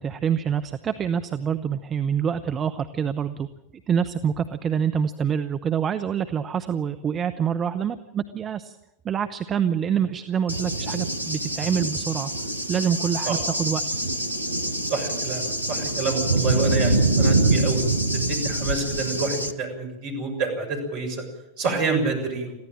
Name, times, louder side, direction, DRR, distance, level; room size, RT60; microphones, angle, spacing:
voice 1, 0.0-3.5 3.9-8.8 9.0-12.3 12.7-13.9, right 8 dB, 25° right, 9 dB, 0.9 m, -26 dB
Cricket / Thunder, 10.5-19.5, right 2 dB, 85° right, 1.0 m, -25 dB
voice 2, 14.8-21.2 21.6-22.5, right 3 dB, 45° right, 4 dB, 6.8 m, -28 dB
22.5 x 15.5 x 9.0 m, 0.92 s
figure-of-eight pair, 90°, 0 cm